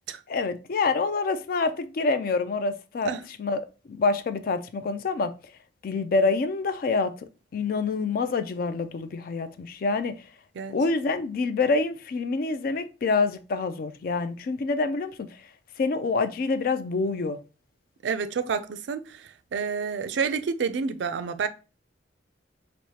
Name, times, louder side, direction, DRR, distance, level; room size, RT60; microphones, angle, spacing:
voice 1, 0.3-3.1 3.4-3.6 3.9-5.3 5.8-7.1 7.5-10.1 10.7-15.1 15.8-17.4, left 3 dB, 50° left, 0.3 m, -26 dB
voice 2, 18.0-21.5, right 5 dB, 75° right, 0.4 m, -29 dB
4.6 x 2.1 x 2.8 m
head